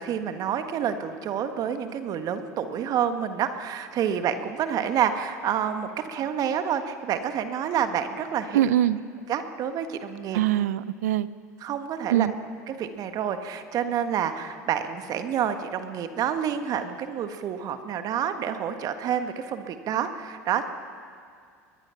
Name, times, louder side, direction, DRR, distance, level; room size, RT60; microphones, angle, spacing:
voice 1, 0.0-8.6 9.3-10.4 11.6-12.3 12.7-20.7, right 8 dB, 45° right, 8 dB, 1.5 m, -28 dB
voice 2, 8.5-9.0 10.3-11.3 12.1-12.3, right 12 dB, 70° right, 18 dB, 0.6 m, -22 dB
21.0 x 21.0 x 5.8 m, 2.2 s
hypercardioid pair, 75°, 9 cm